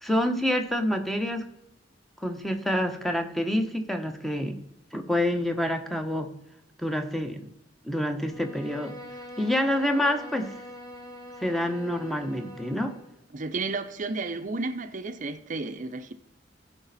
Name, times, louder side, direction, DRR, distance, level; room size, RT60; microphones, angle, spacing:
voice 1, 0.0-1.4 2.2-4.5 4.9-6.3 6.8-7.4 7.8-8.9 9.4-10.5 11.4-12.9, left 1 dB, ahead, 0.9 m, -27 dB
Bowed string instrument, 8.2-13.2, left 1 dB, 20° left, 1.6 m, -43 dB
voice 2, 13.3-16.1, right 3 dB, 45° right, 0.6 m, -32 dB
15.5 x 5.2 x 4.1 m
head